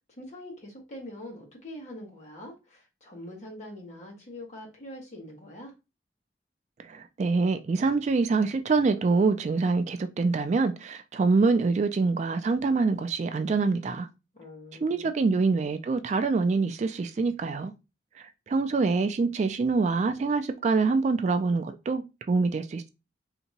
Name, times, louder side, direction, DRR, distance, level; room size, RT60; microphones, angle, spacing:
voice 1, 0.1-5.7 14.3-15.2, left 1 dB, 40° left, 1.3 m, -43 dB
voice 2, 6.8-14.1 14.8-17.7 18.2-22.9, right 4 dB, 40° right, 0.3 m, -25 dB
3.4 x 2.9 x 2.8 m
head